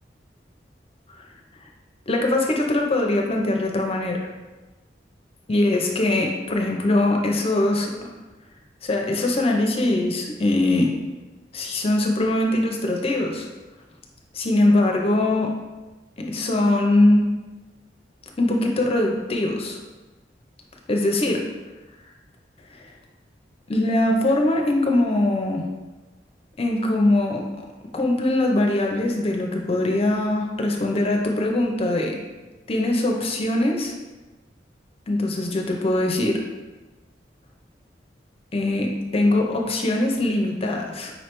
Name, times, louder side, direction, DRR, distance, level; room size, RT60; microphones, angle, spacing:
voice 1, 2.1-4.2 5.5-8.1 8.8-11.0 11.5-13.5 14.3-15.5 16.2-17.2 18.4-19.8 20.9-21.4 22.7-22.8 23.7-25.7 26.6-27.4 27.9-32.2 32.7-33.9 35.1-36.5 38.5-41.1, left 1 dB, 35° left, 1 dB, 0.6 m, -22 dB
5.3 x 3.2 x 3.0 m, 1.2 s
head